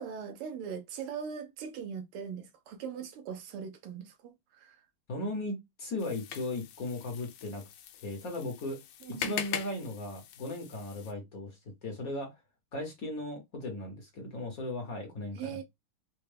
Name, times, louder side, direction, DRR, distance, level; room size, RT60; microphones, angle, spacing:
voice 1, 0.0-4.8 9.0-9.4 15.3-15.6, right 7 dB, 85° right, 1.7 m, -40 dB
voice 2, 5.1-7.6 7.9-8.8 9.2-12.4 12.7-15.6, left 2 dB, 50° left, 1.2 m, -37 dB
sound 1, 6.0-11.1, left 9 dB, 85° left, 1.5 m, -42 dB
4.3 x 2.2 x 3.3 m
omnidirectional pair, 2.4 m